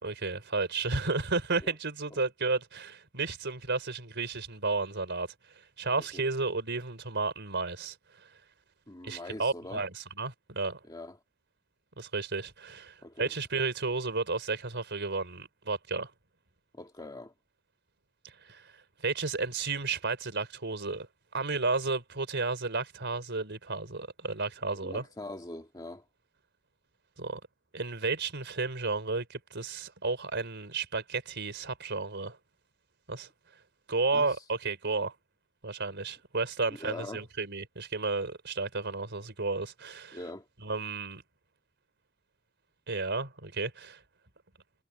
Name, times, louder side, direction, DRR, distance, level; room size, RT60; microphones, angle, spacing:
voice 1, 0.0-8.3 9.0-10.8 12.0-16.1 18.4-21.1 21.3-25.0 27.2-27.4 27.7-32.4 33.1-33.3 33.9-35.1 35.6-40.2 40.6-41.2 42.9-44.0, right 3 dB, 55° right, 4.1 m, -32 dB
voice 2, 6.0-6.3 8.9-9.8 10.9-11.2 13.0-13.3 16.7-17.3 24.8-26.0 34.1-34.4 36.8-37.2 40.1-40.5, left 2 dB, 20° left, 1.8 m, -43 dB
head